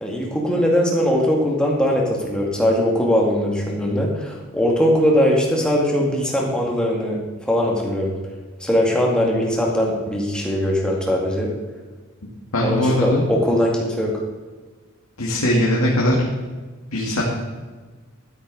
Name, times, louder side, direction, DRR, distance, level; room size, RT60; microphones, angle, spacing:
voice 1, 0.0-8.1 8.6-11.5 12.6-14.2, equal, 5° left, -2 dB, 2.2 m, -20 dB
voice 2, 12.5-13.2 15.2-16.2 16.9-17.2, left 1 dB, 85° left, -4 dB, 2.1 m, -20 dB
12.5 x 9.8 x 4.1 m, 1.3 s
head